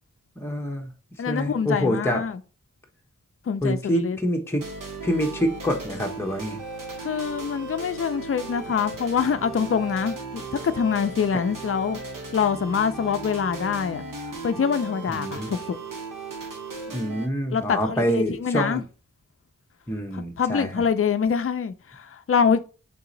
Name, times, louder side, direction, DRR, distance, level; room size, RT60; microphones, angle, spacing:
voice 1, 0.4-0.9 1.3-2.2 3.6-4.6 5.0-6.6 15.1-15.5 16.9-18.8 19.9-20.8, equal, 10° left, 0.8 m, -26 dB
voice 2, 1.2-2.4 3.5-4.2 7.0-12.0 12.3-14.0 14.4-15.8 17.5-18.8 20.1-22.6, left 6 dB, 45° left, 0.4 m, -25 dB
sound 1, 4.6-17.3, right 3 dB, 80° right, 1.0 m, -36 dB
4.0 x 2.8 x 3.8 m
wide cardioid pair, 65°, 32 cm